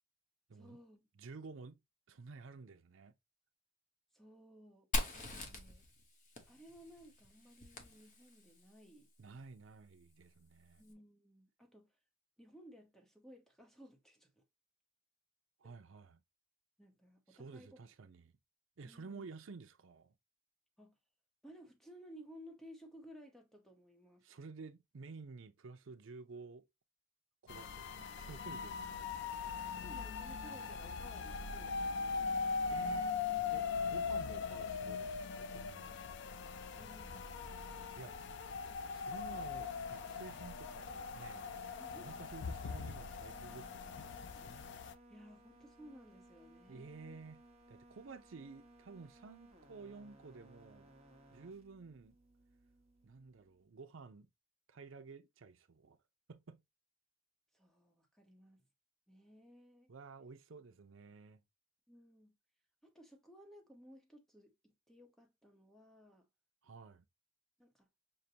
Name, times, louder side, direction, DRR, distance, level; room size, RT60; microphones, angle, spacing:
voice 1, 0.5-1.1 4.1-5.9 6.5-9.1 10.8-11.9 12.4-14.4 15.6-15.7 16.8-17.8 18.8-19.3 20.8-21.0 21.4-24.3 29.7-32.3 36.7-37.5 41.8-42.1 44.7-47.2 57.5-58.7 59.1-59.9 61.9-62.4 62.8-66.3 67.6-67.9, equal, ahead, 0.9 m, -58 dB
voice 2, 1.2-1.8 2.1-3.1 9.2-10.8 15.6-16.2 17.3-18.3 18.8-20.1 24.2-26.6 27.4-29.2 32.7-33.1 33.5-36.0 38.0-38.1 38.9-41.6 41.9-44.2 46.7-47.4 47.7-50.9 51.3-52.1 53.0-54.3 54.7-56.0 56.3-56.6 59.9-61.4 66.6-67.1, right 4 dB, 75° right, 0.6 m, -52 dB
Fire, 4.9-8.6, left 1 dB, 40° left, 0.9 m, -42 dB
sound 1, 27.5-44.9, left 5 dB, 65° left, 0.4 m, -40 dB
sound 2, 36.4-53.6, right 1 dB, 35° right, 1.1 m, -63 dB
6.4 x 2.2 x 2.7 m
head